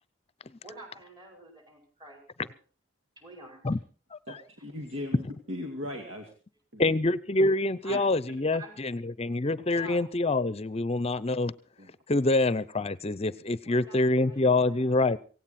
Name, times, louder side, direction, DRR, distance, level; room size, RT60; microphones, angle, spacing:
voice 1, 0.6-2.6 3.2-3.6 7.8-8.1 8.5-8.8 9.7-10.0 13.6-14.9, right 1 dB, 20° right, 3 dB, 5.7 m, -47 dB
voice 2, 4.3-6.3 6.7-6.8 7.4-7.5 7.9-8.0 8.3-8.4 11.8-11.9, left 1 dB, 85° right, 3 dB, 2.4 m, -38 dB
voice 3, 6.8-11.5 12.1-15.2, left 2 dB, 30° left, 18 dB, 0.6 m, -26 dB
17.0 x 17.0 x 4.3 m, 0.38 s
head